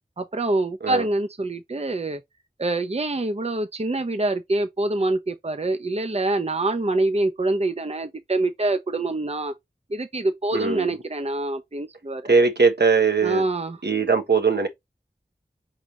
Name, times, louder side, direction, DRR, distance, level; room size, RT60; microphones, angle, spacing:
voice 1, 0.2-2.2 2.6-9.5 9.9-12.4 13.2-13.8, right 2 dB, 40° right, 0.6 m, -25 dB
voice 2, 10.5-10.9 12.3-13.4 13.8-14.7, right 4 dB, 80° right, 1.3 m, -20 dB
5.0 x 3.8 x 2.8 m
wide cardioid pair, 50°, 17 cm